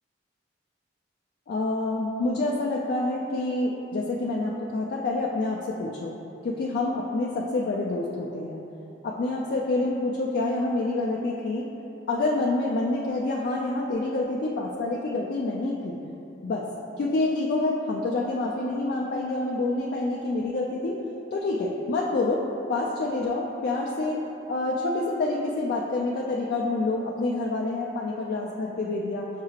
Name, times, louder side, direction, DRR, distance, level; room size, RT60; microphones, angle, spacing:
voice 1, 1.5-6.1 6.4-8.6 9.0-11.7 12.1-16.0 16.4-16.7 17.0-21.0 21.3-22.4 22.7-24.2 24.5-29.3, left 2 dB, 55° left, -3 dB, 0.3 m, -27 dB
6.5 x 2.4 x 3.1 m, 2.9 s
head